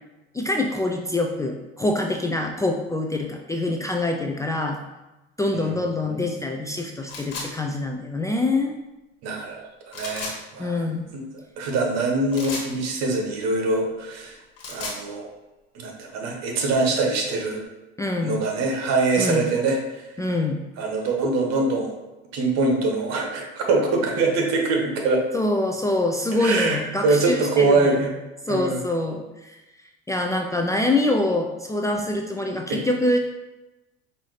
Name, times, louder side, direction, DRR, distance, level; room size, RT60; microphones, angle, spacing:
voice 1, 0.3-4.8 5.4-8.7 10.6-11.1 18.0-18.4 19.2-19.4 20.2-20.6 25.3-28.1 28.5-29.6 30.1-33.2, left 2 dB, 10° left, 1 dB, 0.4 m, -25 dB
sound 1, 7.1-7.5 9.9-10.4 12.3-12.7 14.4-15.0, left 3 dB, 50° left, 1.4 m, -33 dB
voice 2, 9.2-9.7 9.9-10.8 11.1-11.2 11.6-14.4 14.7-15.3 15.7-17.6 18.2-20.1 20.8-22.0 22.3-25.2 26.4-28.1 28.5-28.8 32.7-32.8, right 3 dB, 60° right, 2 dB, 1.1 m, -23 dB
5.4 x 2.7 x 3.2 m, 1.0 s
hypercardioid pair, 75°, 31 cm